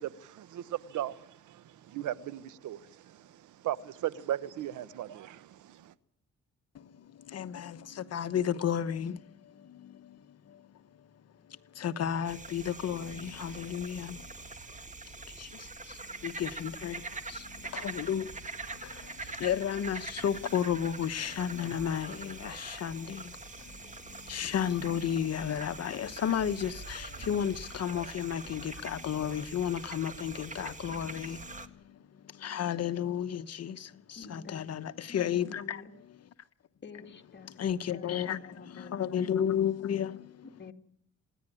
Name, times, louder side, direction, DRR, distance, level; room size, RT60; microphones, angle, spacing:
voice 1, 0.0-5.9, right 12 dB, 75° right, 1.1 m, -37 dB
voice 2, 6.7-10.7 11.5-14.3 15.3-35.8 37.6-40.5, left 9 dB, 55° left, 1.1 m, -33 dB
sound 1, 12.2-31.7, right 3 dB, 25° right, 1.9 m, -44 dB
sound 2, 20.2-20.8 23.2-24.4, right 4 dB, 40° right, 3.8 m, -60 dB
voice 3, 34.2-34.7 35.1-35.9 36.8-39.4 40.6-40.7, left 4 dB, 35° left, 2.6 m, -49 dB
27.5 x 11.0 x 10.0 m
cardioid pair, 90°, 30 cm